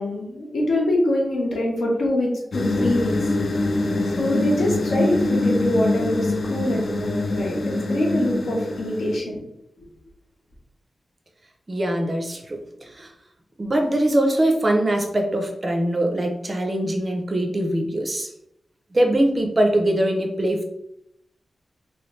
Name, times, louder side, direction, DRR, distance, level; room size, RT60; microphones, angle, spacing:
voice 1, 0.0-3.3 4.0-9.4, left 1 dB, 70° left, -2 dB, 1.2 m, -24 dB
sound 1, 2.5-9.2, left 2 dB, 50° left, 0.4 m, -24 dB
voice 2, 11.7-12.6 12.9-13.1 13.6-18.3 18.9-20.6, right 1 dB, 25° right, 3 dB, 0.5 m, -22 dB
3.1 x 2.9 x 3.0 m, 0.79 s
wide cardioid pair, 165°, 0 cm